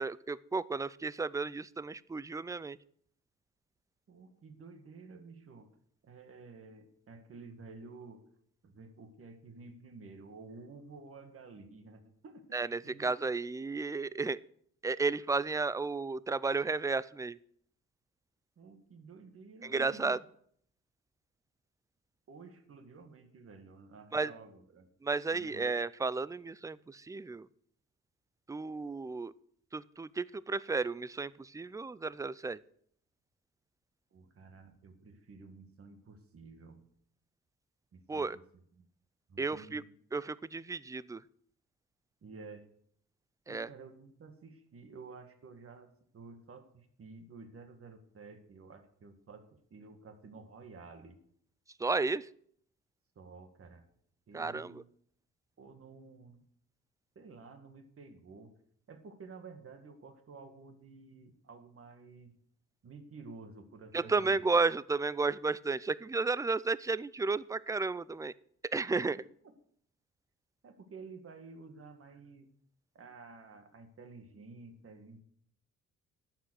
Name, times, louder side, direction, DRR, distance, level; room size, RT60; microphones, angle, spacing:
voice 1, 0.0-2.8 12.5-14.4 14.8-17.4 19.6-20.2 24.1-24.3 25.0-27.5 28.5-29.3 29.7-32.6 38.1-38.4 39.4-39.8 40.1-41.2 43.5-43.7 51.8-52.3 54.3-54.8 63.9-68.3 68.7-69.2, right 3 dB, 10° right, 20 dB, 0.4 m, -33 dB
voice 2, 4.1-5.7 6.0-8.3 8.6-13.1 18.6-20.2 22.3-24.9 25.3-25.6 34.1-36.9 37.9-38.4 38.7-38.9 39.3-39.8 42.2-42.7 43.5-51.2 53.2-53.9 54.3-54.9 55.6-56.4 57.2-58.6 58.9-62.4 62.8-64.4 68.9-69.1 69.4-69.5 70.6-72.5 72.9-75.2, right 4 dB, 50° right, 7 dB, 2.0 m, -52 dB
11.5 x 7.6 x 6.4 m, 0.65 s
cardioid pair, 90°, 30 cm